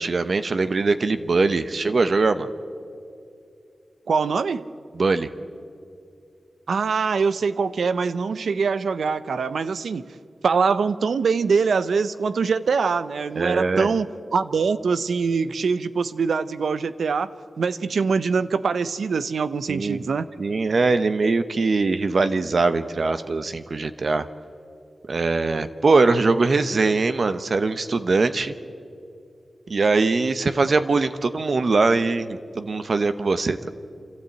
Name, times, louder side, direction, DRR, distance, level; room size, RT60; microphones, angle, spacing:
voice 1, 0.0-2.5 4.9-5.3 13.4-13.9 19.7-20.0 20.4-24.3 25.0-28.5 29.7-33.7, right 3 dB, 60° right, 10 dB, 0.9 m, -22 dB
voice 2, 4.1-4.7 6.7-10.1 10.4-14.1 14.3-17.3 17.6-20.3, right 5 dB, 90° right, 14 dB, 0.6 m, -23 dB
29.0 x 12.5 x 9.0 m, 2.5 s
wide cardioid pair, 75°, 0 cm